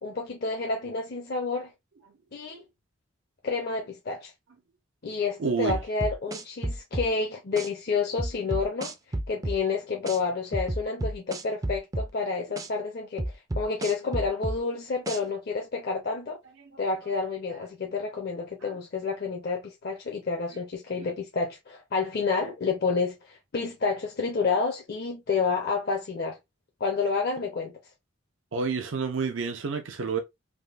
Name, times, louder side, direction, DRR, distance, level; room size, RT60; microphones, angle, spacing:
voice 1, 0.0-1.7 2.3-2.6 3.4-4.3 5.0-8.9 9.3-16.4 16.8-26.4 26.8-27.8, left 4 dB, 55° left, 0.6 m, -29 dB
voice 2, 5.4-5.8 28.5-30.2, right 5 dB, 85° right, 0.6 m, -29 dB
sound 1, 5.7-7.1 7.6-7.7 8.2-9.6 10.1-10.2 10.5-12.1 12.6-12.7 13.2-14.6 15.1-15.2, right 1 dB, 20° right, 0.4 m, -31 dB
3.5 x 2.5 x 2.4 m
head